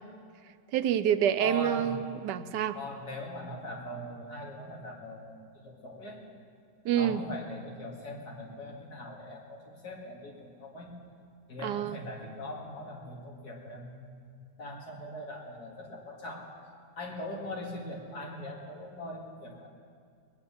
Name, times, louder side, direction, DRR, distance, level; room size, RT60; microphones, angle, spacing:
voice 1, 0.7-2.8 6.8-7.2 11.6-12.0, right 10 dB, 85° right, 11 dB, 1.2 m, -27 dB
voice 2, 1.4-2.0 2.7-5.3 5.6-6.2 7.0-10.9 11.5-14.3 14.6-16.5 17.0-19.7, left 1 dB, 65° left, -2 dB, 2.8 m, -41 dB
20.5 x 9.7 x 7.1 m, 2.2 s
omnidirectional pair, 1.8 m